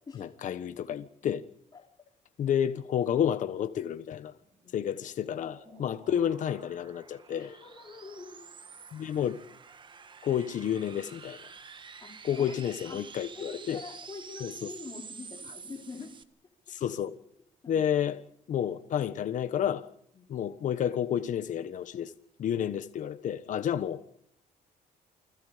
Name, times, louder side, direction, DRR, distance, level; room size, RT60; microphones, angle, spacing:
voice 1, 0.1-1.4 2.4-4.3 4.7-7.5 8.9-9.4 10.2-11.4 12.2-13.8 14.4-14.7 16.7-17.2 17.7-18.2 18.5-19.9 20.3-22.1 22.4-24.0, left 9 dB, 60° left, 1.3 m, -30 dB
sound 1, 4.4-16.2, right 5 dB, 35° right, 1.6 m, -49 dB
voice 2, 5.6-6.0 7.4-8.5 12.0-13.1 13.3-16.1 17.6-18.0 20.1-20.2, left 4 dB, 30° left, 4.5 m, -45 dB
28.5 x 21.5 x 5.2 m
cardioid pair, 130°, 15 cm